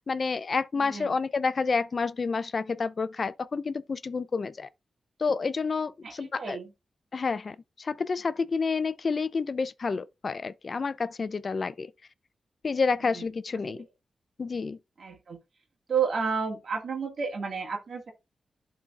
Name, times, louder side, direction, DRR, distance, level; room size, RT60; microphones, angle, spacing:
voice 1, 0.0-4.7 5.2-6.6 7.1-11.9 12.6-13.9 14.4-14.8, left 4 dB, 55° left, 0.4 m, -29 dB
voice 2, 0.7-1.2 6.0-6.7 13.0-13.3 13.7-13.8 15.0-15.4 15.9-18.1, right 6 dB, 65° right, 1.8 m, -31 dB
11.5 x 3.9 x 2.4 m
cardioid pair, 50°, 0 cm